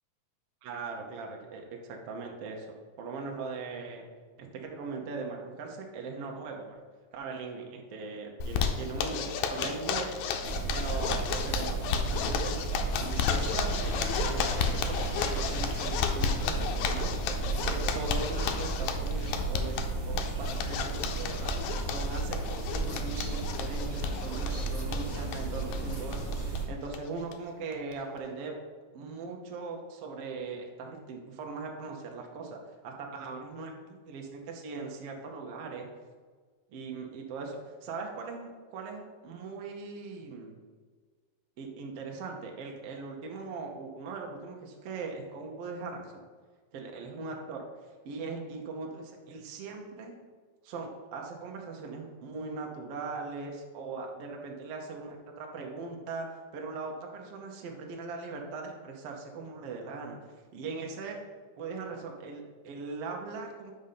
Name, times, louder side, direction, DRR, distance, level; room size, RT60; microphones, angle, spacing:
voice 1, 0.6-2.7 3.0-4.1 4.4-6.8 7.1-10.2 10.7-17.1 17.5-19.8 20.0-21.6 21.8-28.5 28.9-35.9 36.7-40.6 41.6-46.2 46.7-50.1 50.6-61.2 61.6-63.7, right 4 dB, 65° right, 1 dB, 1.6 m, -40 dB
Zipper (clothing), 8.4-26.6 26.9-27.0 27.3-27.4 27.7-28.2, left 7 dB, 80° left, 1.9 m, -33 dB
sound 1, 10.4-26.6, right 3 dB, 30° right, 1.3 m, -33 dB
sound 2, 13.5-17.4, right 4 dB, 85° right, 1.0 m, -51 dB
5.4 x 5.1 x 5.6 m, 1.5 s
omnidirectional pair, 3.4 m